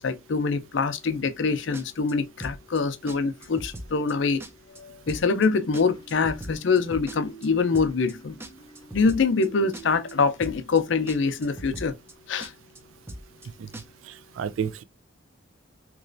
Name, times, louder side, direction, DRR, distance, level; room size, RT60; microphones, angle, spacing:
voice 1, 0.0-4.4 4.8-8.3 8.9-12.0 12.3-12.5, left 4 dB, 65° left, 0.5 m, -24 dB
sound 1, 1.7-2.1 2.4-2.8 3.1-3.2 3.4-4.1 4.4-4.8 5.1-5.5 5.7-7.5 7.7-8.1 8.4-9.5 9.7-10.1 10.4-10.8 11.1-11.2 11.4-12.1 12.4-12.8 13.1-13.5 13.7-13.8, right 1 dB, 10° right, 0.4 m, -39 dB
sound 2, 5.1-10.3, right 6 dB, 25° left, 0.7 m, -48 dB
voice 2, 14.1-14.8, right 7 dB, 80° right, 0.4 m, -31 dB
3.1 x 2.9 x 2.5 m
head